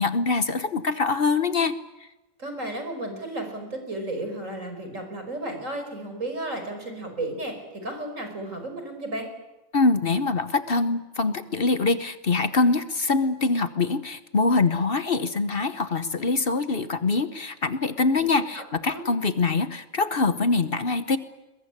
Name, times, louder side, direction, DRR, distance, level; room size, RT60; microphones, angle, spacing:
voice 1, 0.0-1.7 9.7-21.2, left 3 dB, 50° left, 12 dB, 1.2 m, -24 dB
voice 2, 2.4-7.6 7.8-9.3 18.2-19.0, right 1 dB, 85° right, 5 dB, 5.7 m, -33 dB
22.5 x 21.5 x 9.8 m, 1.1 s
omnidirectional pair, 1.3 m